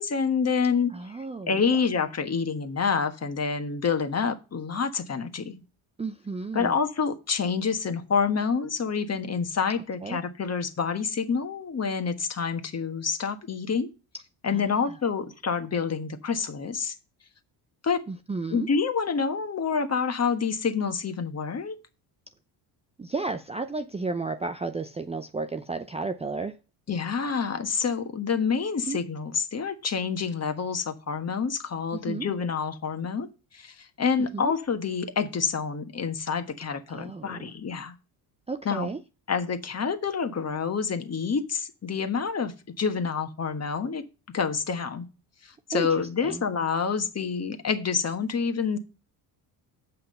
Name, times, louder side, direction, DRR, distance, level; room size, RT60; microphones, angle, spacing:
voice 1, 0.0-0.9 1.5-5.5 6.5-13.9 14.4-16.9 17.8-18.0 18.5-21.7 26.9-33.3 33.5-37.9 38.6-38.9 39.3-44.0 44.3-45.1 45.7-48.8, left 5 dB, 35° left, 1.4 m, -27 dB
voice 2, 0.9-1.6 6.0-6.8 10.0-10.2 14.5-15.0 18.1-18.7 23.0-26.6 28.9-29.0 31.9-32.3 34.3-34.5 36.9-37.5 38.5-39.0 45.7-46.4, right 3 dB, 15° right, 0.5 m, -33 dB
7.6 x 5.7 x 5.5 m
supercardioid pair, 70°, 47 cm